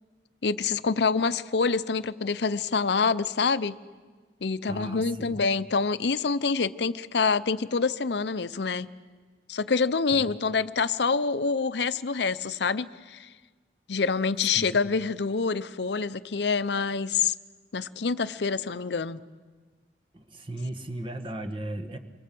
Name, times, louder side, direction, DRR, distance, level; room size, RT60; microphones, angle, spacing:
voice 1, 0.4-3.8 4.4-8.9 9.5-13.3 13.9-17.3 17.7-19.2, left 4 dB, 65° left, 14 dB, 0.7 m, -26 dB
voice 2, 4.7-5.3 10.1-10.3 14.5-14.7 20.1-22.0, right 1 dB, 30° right, 7 dB, 1.5 m, -36 dB
27.0 x 23.0 x 7.7 m, 1.4 s
head